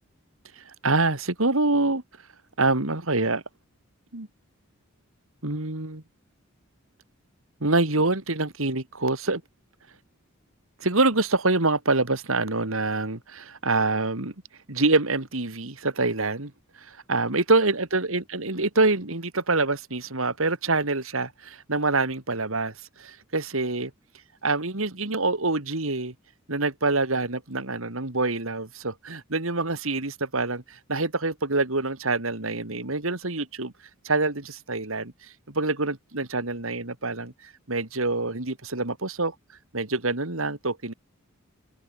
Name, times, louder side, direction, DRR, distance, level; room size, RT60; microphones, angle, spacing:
voice 1, 0.6-2.0 2.6-3.4 4.1-4.3 5.4-6.0 7.6-9.4 10.8-14.3 14.7-23.9 24.4-26.1 26.5-33.7 34.0-39.3 39.7-40.9, right 3 dB, 70° right, 2.7 m, -26 dB
open air
head